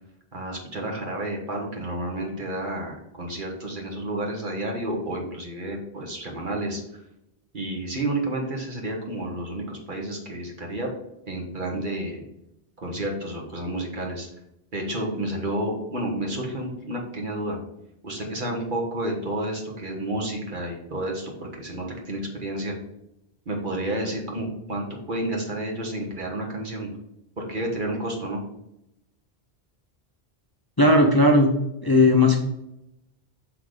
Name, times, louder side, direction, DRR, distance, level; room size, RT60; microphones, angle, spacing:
voice 1, 0.3-6.8 7.5-10.9 11.3-12.2 12.8-14.3 14.7-17.6 18.0-22.7 23.4-26.9 27.4-28.4, right 1 dB, 50° right, 0 dB, 1.5 m, -30 dB
voice 2, 30.8-31.5 31.8-32.4, left 2 dB, 25° left, 1 dB, 0.6 m, -16 dB
6.1 x 3.5 x 5.0 m, 0.85 s
omnidirectional pair, 1.1 m